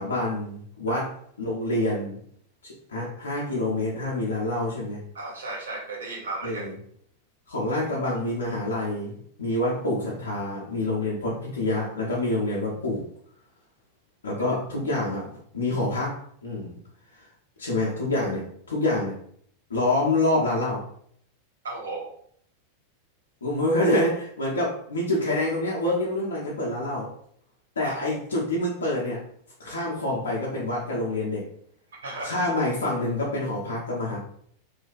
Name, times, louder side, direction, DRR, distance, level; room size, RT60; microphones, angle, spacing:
voice 1, 0.0-2.2 2.6-5.0 6.4-6.7 7.5-9.1 9.4-13.1 14.2-16.8 17.1-17.2 17.6-19.2 19.7-20.8 23.4-27.1 27.8-29.2 29.6-31.5 32.2-34.2, left 1 dB, 70° left, -5 dB, 0.6 m, -27 dB
voice 2, 5.1-6.7 21.6-22.1 27.8-27.9 32.0-32.3, right 2 dB, 65° right, -1 dB, 0.7 m, -34 dB
2.5 x 2.2 x 2.5 m, 0.63 s
figure-of-eight pair, 90°, 0 cm